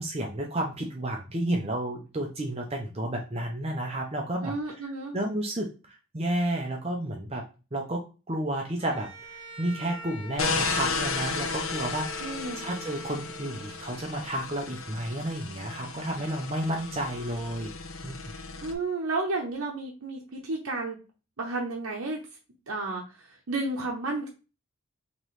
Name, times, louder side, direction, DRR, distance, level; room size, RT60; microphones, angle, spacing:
voice 1, 0.0-4.5 5.1-7.4 7.7-12.3 12.6-17.7 18.0-18.2, right 1 dB, 30° right, 0 dB, 0.6 m, -31 dB
voice 2, 4.4-5.2 12.2-12.6 18.6-21.0 21.4-22.2 22.7-24.3, right 2 dB, 75° right, -1 dB, 0.8 m, -32 dB
Bowed string instrument, 8.8-14.0, equal, 20° left, 0.7 m, -44 dB
sound 1, 10.4-18.7, left 4 dB, 65° left, 0.5 m, -34 dB
4.1 x 3.0 x 3.1 m, 0.32 s
head